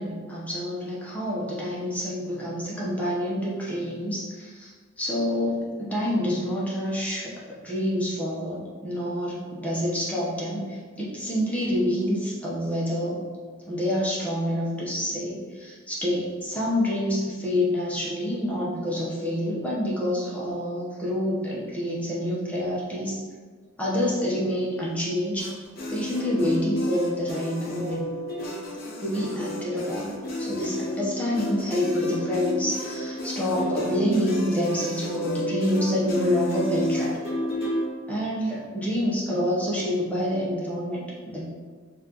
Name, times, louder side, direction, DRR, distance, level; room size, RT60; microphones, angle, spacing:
voice 1, 0.0-4.7 5.0-13.2 13.7-23.2 23.8-25.5 25.9-28.1 29.0-37.2 38.1-41.4, equal, 5° left, -6 dB, 0.8 m, -27 dB
sound 1, 25.4-37.9, left 1 dB, 45° left, 0.7 m, -31 dB
5.6 x 2.5 x 2.9 m, 1.5 s
head